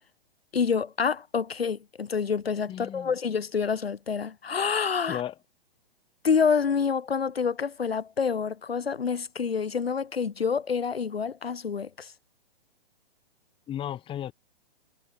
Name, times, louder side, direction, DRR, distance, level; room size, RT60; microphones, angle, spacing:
voice 1, 0.5-5.2 6.2-12.1, left 6 dB, 80° left, 2.3 m, -27 dB
voice 2, 2.7-3.1 5.0-5.3 13.7-14.3, left 11 dB, 15° left, 1.6 m, -34 dB
hypercardioid pair, 125°, 30 cm